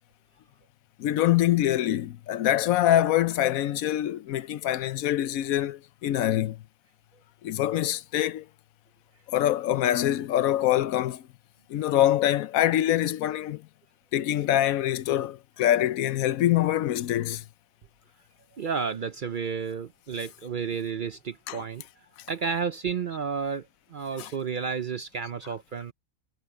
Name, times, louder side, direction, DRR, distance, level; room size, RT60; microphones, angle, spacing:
voice 1, 1.0-6.6 7.4-8.5 9.3-11.2 11.7-13.6 14.1-17.4 21.5-21.6 24.2-24.3, left 12 dB, 85° left, 1.1 m, -24 dB
voice 2, 18.6-21.8 22.3-23.7 23.9-25.9, right 6 dB, 55° right, 0.6 m, -31 dB
omnidirectional pair, 1.4 m